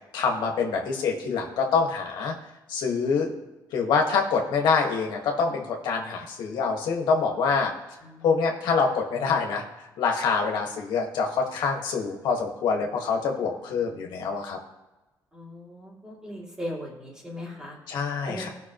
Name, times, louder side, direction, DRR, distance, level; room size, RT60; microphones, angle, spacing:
voice 1, 0.1-2.3 2.7-3.3 3.7-7.7 8.2-9.6 10.0-14.6 17.9-18.5, left 5 dB, 80° left, 1 dB, 1.7 m, -25 dB
voice 2, 15.3-17.8 18.3-18.4, equal, 10° right, -4 dB, 2.7 m, -38 dB
17.5 x 5.9 x 3.1 m, 1.1 s
cardioid pair, 155°, 7 cm